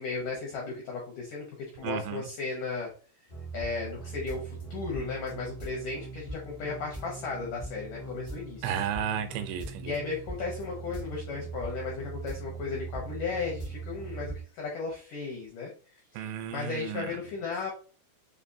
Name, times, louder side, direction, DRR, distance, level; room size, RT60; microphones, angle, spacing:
voice 1, 0.0-1.5 1.8-2.9 3.5-8.7 9.8-15.7 16.1-17.7, left 4 dB, 80° left, -2 dB, 1.8 m, -35 dB
voice 2, 1.8-2.3 8.6-9.9 16.2-17.1, right 9 dB, 85° right, 8 dB, 2.8 m, -33 dB
sound 1, 3.3-14.4, right 4 dB, 55° left, 0.4 m, -41 dB
6.7 x 2.6 x 2.6 m, 0.38 s
omnidirectional pair, 5.1 m